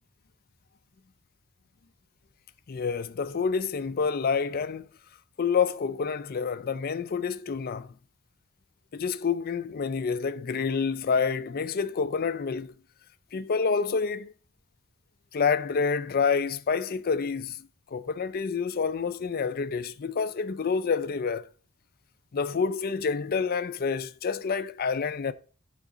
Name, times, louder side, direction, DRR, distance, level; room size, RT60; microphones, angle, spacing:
voice 1, 2.7-4.9 5.4-7.9 8.9-12.7 13.3-14.3 15.3-17.6 17.9-21.5 22.3-25.3, left 5 dB, 40° left, 0.4 m, -28 dB
7.3 x 3.9 x 5.5 m
head